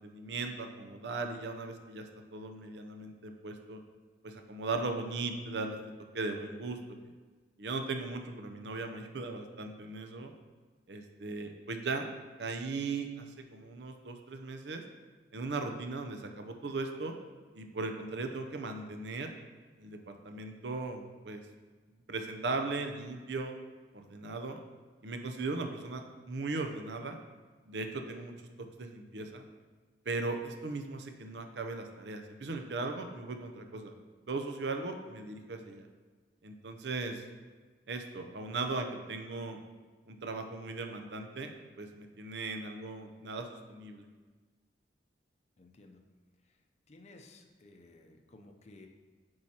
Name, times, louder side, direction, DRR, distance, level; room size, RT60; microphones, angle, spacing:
voice 1, 0.0-3.8 4.2-5.8 6.1-6.8 7.6-10.3 10.9-12.1 12.4-13.3 13.5-14.8 15.3-17.1 17.5-19.4 19.8-21.4 22.1-23.5 23.9-24.6 25.0-27.2 27.7-28.3 28.8-29.5 30.1-33.9 34.3-35.9 36.4-37.2 37.9-39.6 40.1-44.1, right 3 dB, 70° right, 5 dB, 0.6 m, -38 dB
voice 2, 45.6-46.0 46.9-48.9, left 2 dB, 40° left, 3 dB, 0.6 m, -55 dB
8.6 x 4.7 x 2.9 m, 1.4 s
head